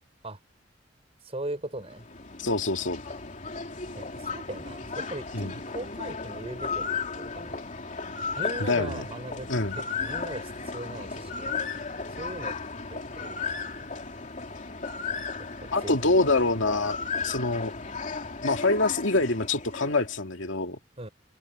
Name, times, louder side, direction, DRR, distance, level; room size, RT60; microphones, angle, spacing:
voice 1, 1.2-2.1 3.9-7.6 8.4-11.7 12.1-12.6 12.9-13.6 15.6-16.2 21.0-21.1, right 1 dB, 35° right, 6.4 m, -39 dB
sound 1, 1.8-20.2, left 4 dB, 40° left, 3.2 m, -35 dB
voice 2, 2.4-3.0 5.3-5.5 8.6-9.0 9.5-9.8 15.7-17.0 17.2-17.8 18.4-20.8, left 2 dB, 80° left, 2.5 m, -25 dB
head